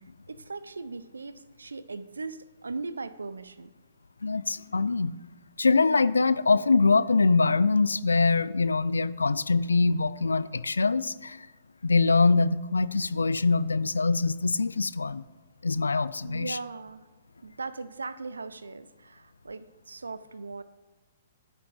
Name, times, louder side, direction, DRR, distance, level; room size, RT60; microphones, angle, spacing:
voice 1, 0.3-3.7 16.2-17.1 17.4-20.6, right 3 dB, 85° right, 15 dB, 0.4 m, -39 dB
voice 2, 4.2-5.1 5.6-11.5 11.8-15.2 15.6-16.6, left 4 dB, 90° left, 17 dB, 0.3 m, -24 dB
12.5 x 5.8 x 3.3 m, 1.3 s
hypercardioid pair, 125°, 0 cm